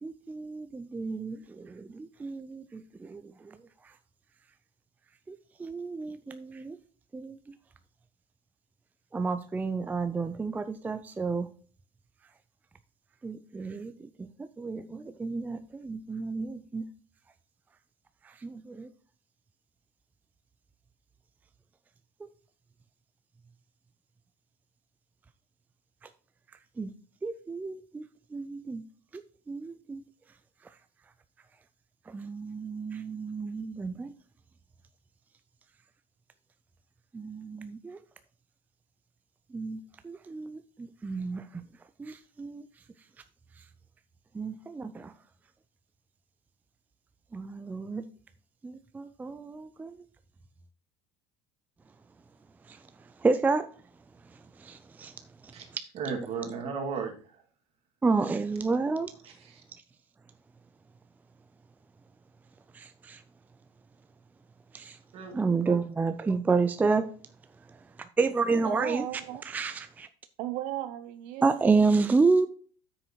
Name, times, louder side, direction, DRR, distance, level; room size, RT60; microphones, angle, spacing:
voice 1, 0.0-3.6 5.3-6.8 7.1-7.4 9.1-11.5 13.2-13.9 14.2-16.9 18.2-18.9 26.8-26.9 27.2-28.8 29.1-30.0 32.1-34.1 37.1-38.0 39.5-41.6 42.0-42.6 44.3-45.1 47.3-48.1 48.6-50.0 52.7-52.8 53.2-53.7 54.6-55.1 58.0-59.1 62.7-63.2 64.7-65.0 65.3-67.1 68.0-69.1 69.5-70.1 71.4-72.5, right 4 dB, 10° right, 0.4 m, -30 dB
voice 2, 55.9-57.4 59.2-59.6 65.1-65.3 65.7-65.8, right 5 dB, 45° right, 2.1 m, -35 dB
voice 3, 68.5-69.4 70.4-71.9, right 13 dB, 70° right, 0.5 m, -36 dB
9.0 x 6.3 x 3.0 m
supercardioid pair, 120°, 14 cm